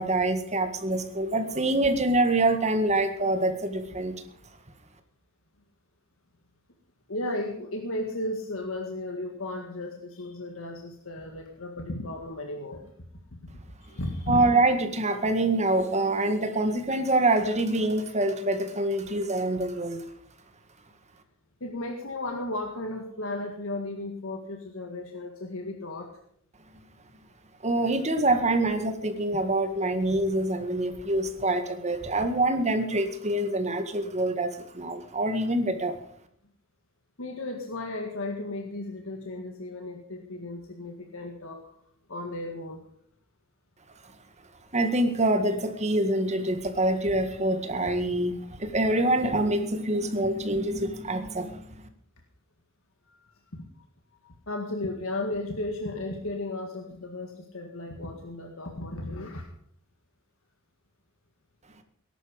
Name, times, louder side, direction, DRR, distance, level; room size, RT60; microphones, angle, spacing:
voice 1, 0.0-4.1 14.3-20.0 27.6-34.5 34.7-35.9 44.7-51.5, right 2 dB, 35° right, 7 dB, 1.8 m, -25 dB
voice 2, 7.1-12.9 13.3-13.5 13.8-14.4 21.6-26.2 37.2-41.7 42.1-42.8 53.1-53.6 54.2-59.5, left 2 dB, 80° left, 3 dB, 1.8 m, -35 dB
18.5 x 11.0 x 5.2 m, 0.69 s
head